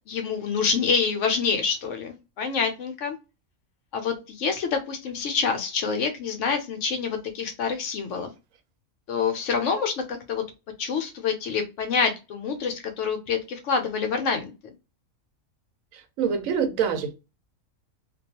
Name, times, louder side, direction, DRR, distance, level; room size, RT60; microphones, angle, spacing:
voice 1, 0.1-3.2 3.9-8.3 9.1-10.4 10.8-14.7, left 5 dB, 70° left, 0.8 m, -27 dB
voice 2, 15.9-17.1, right 7 dB, 75° right, 1.0 m, -26 dB
2.3 x 2.3 x 2.8 m
omnidirectional pair, 1.4 m